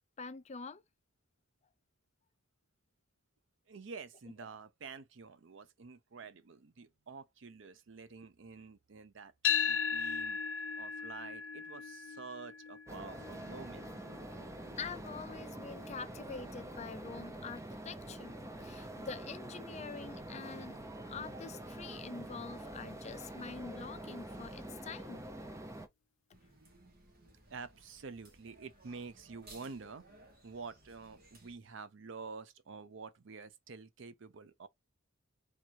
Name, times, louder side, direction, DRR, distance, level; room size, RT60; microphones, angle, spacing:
voice 1, 0.2-0.8 14.8-25.2, left 5 dB, 35° left, 0.5 m, -46 dB
voice 2, 3.7-10.4 10.8-13.9 27.5-30.0 30.4-34.7, right 4 dB, 70° right, 0.6 m, -48 dB
sound 1, 9.4-17.6, left 7 dB, 80° left, 0.5 m, -38 dB
sound 2, 12.9-25.9, right 1 dB, 15° right, 0.6 m, -46 dB
sound 3, 26.3-31.5, right 1 dB, 50° right, 1.6 m, -60 dB
3.6 x 2.9 x 4.5 m
head